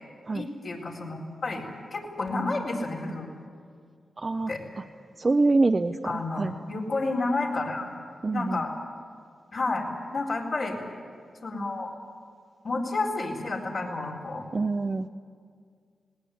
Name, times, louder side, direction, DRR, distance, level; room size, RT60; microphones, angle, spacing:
voice 1, 0.3-1.6 1.9-3.3 4.5-4.6 6.0-7.9 8.3-8.7 9.5-9.9 10.1-10.8 11.4-11.9 12.6-14.4, left 3 dB, 65° left, -3 dB, 4.2 m, -30 dB
voice 2, 4.2-4.5 5.2-6.5 8.2-8.6 14.5-15.1, right 3 dB, 40° right, 6 dB, 0.7 m, -25 dB
19.5 x 17.5 x 9.5 m, 2.1 s
cardioid pair, 55°, 0 cm